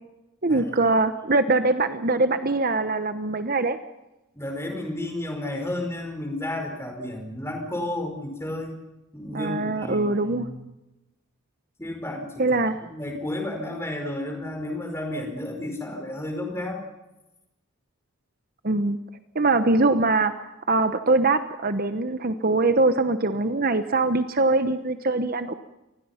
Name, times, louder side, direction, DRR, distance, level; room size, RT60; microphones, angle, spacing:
voice 1, 0.4-3.8 9.3-10.5 12.4-12.7 18.6-19.0 19.3-25.5, right 2 dB, 40° right, 10 dB, 1.0 m, -22 dB
voice 2, 4.3-8.8 9.1-10.6 11.8-12.6 12.9-16.8, left 1 dB, 10° left, 4 dB, 4.9 m, -32 dB
28.0 x 20.5 x 5.8 m, 0.97 s
head